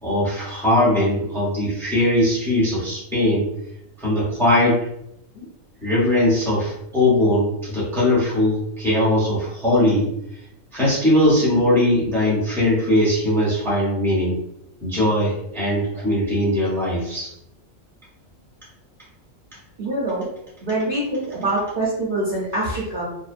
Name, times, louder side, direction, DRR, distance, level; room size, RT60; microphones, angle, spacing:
voice 1, 0.0-3.5 4.0-4.9 5.3-5.5 5.8-10.1 10.7-14.4 14.8-17.3, left 1 dB, ahead, -7 dB, 0.7 m, -20 dB
voice 2, 19.8-20.3 20.6-23.1, right 2 dB, 50° right, -8 dB, 0.7 m, -24 dB
2.6 x 2.1 x 2.4 m, 0.80 s
omnidirectional pair, 1.5 m